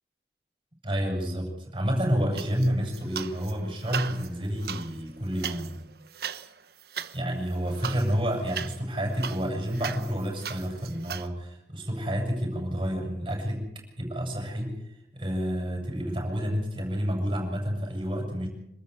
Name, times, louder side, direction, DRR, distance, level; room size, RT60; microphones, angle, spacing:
voice 1, 0.8-5.8 7.1-18.5, equal, 30° right, 1 dB, 7.9 m, -29 dB
sound 1, 2.3-3.5 3.8-11.3, right 7 dB, 60° right, 1.1 m, -38 dB
27.0 x 13.5 x 8.5 m, 0.85 s
head